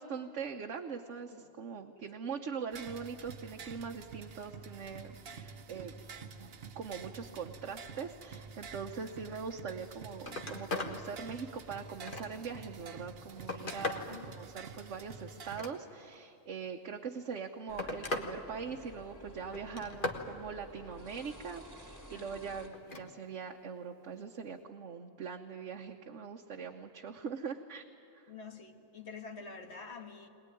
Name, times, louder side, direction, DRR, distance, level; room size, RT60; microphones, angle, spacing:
voice 1, 0.0-6.0 6.4-27.9 28.1-28.3, right 6 dB, 90° right, 1.3 m, -42 dB
sound 1, 2.7-15.7, right 5 dB, 55° right, 1.1 m, -49 dB
Telephone, 9.7-9.9 10.2-11.0 11.5-12.5 13.1-14.1 15.4-16.2 17.2-18.3 18.7-19.1 19.5-20.3 22.7-23.1 24.5-24.6, left 2 dB, 45° left, 1.6 m, -39 dB
sound 2, 17.7-22.7, equal, 15° left, 3.0 m, -52 dB
voice 2, 28.3-30.3, left 5 dB, 65° left, 1.7 m, -47 dB
21.5 x 20.0 x 9.9 m
omnidirectional pair, 1.2 m